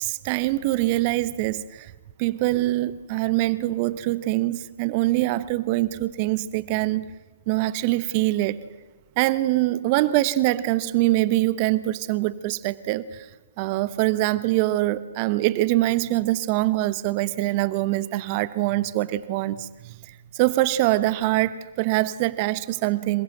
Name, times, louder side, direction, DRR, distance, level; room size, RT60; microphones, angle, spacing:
voice 1, 0.0-1.9 2.2-7.1 7.5-8.6 9.2-13.3 13.6-23.2, right 17 dB, 40° right, 17 dB, 1.0 m, -24 dB
27.0 x 23.5 x 8.0 m, 1.3 s
hypercardioid pair, 125°, 0 cm